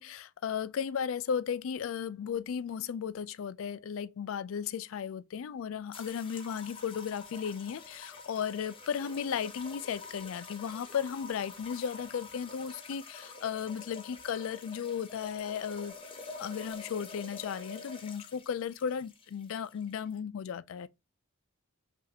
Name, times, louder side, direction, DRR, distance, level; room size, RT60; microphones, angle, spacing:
voice 1, 0.0-15.9 16.4-20.9, left 7 dB, 65° left, 0.3 m, -35 dB
sound 1, 5.9-20.2, left 4 dB, 25° left, 0.7 m, -47 dB
5.8 x 2.4 x 2.8 m
head